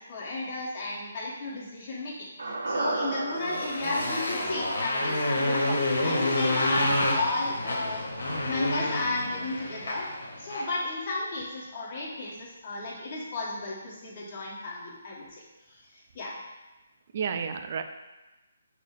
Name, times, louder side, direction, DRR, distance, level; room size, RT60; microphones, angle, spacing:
voice 1, 0.1-2.3 2.7-8.0 8.4-10.1 10.4-15.4 15.7-16.4, left 2 dB, 35° left, -6 dB, 1.4 m, -33 dB
sound 1, 2.4-6.7 7.0-7.1, right 2 dB, 85° right, 0.7 m, -35 dB
Motorcycle, 3.4-10.8, left 1 dB, 75° left, 1.0 m, -28 dB
voice 2, 5.5-6.1 17.1-17.8, right 6 dB, 45° right, 7 dB, 0.4 m, -33 dB
6.0 x 2.1 x 4.2 m, 1.1 s
hypercardioid pair, 160°, 0 cm